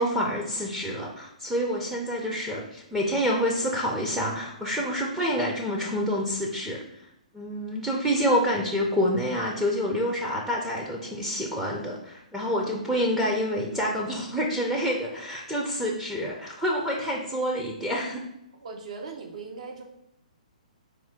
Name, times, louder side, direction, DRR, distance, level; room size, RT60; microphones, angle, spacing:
voice 1, 0.0-6.8 7.3-18.2, equal, 5° right, -2 dB, 0.5 m, -27 dB
voice 2, 18.6-19.8, right 4 dB, 60° right, 2 dB, 0.8 m, -39 dB
4.2 x 2.2 x 4.1 m, 0.81 s
figure-of-eight pair, 125°, 4 cm